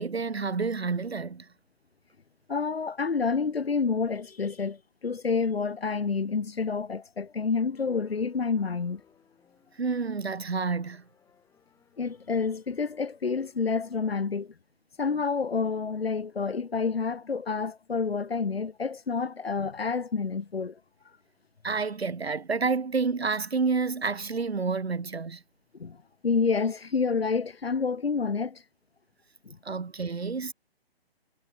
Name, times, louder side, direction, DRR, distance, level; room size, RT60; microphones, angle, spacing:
voice 1, 0.0-1.5 9.8-11.0 21.6-25.4 29.6-30.5, right 4 dB, 85° right, 1.1 m, -29 dB
voice 2, 2.5-9.0 12.0-14.5 15.0-20.8 25.8-26.0 26.2-28.6 29.5-29.6, left 5 dB, 75° left, 1.7 m, -28 dB
sound 1, 7.8-14.0, left 7 dB, 10° left, 4.5 m, -65 dB
figure-of-eight pair, 135°, 31 cm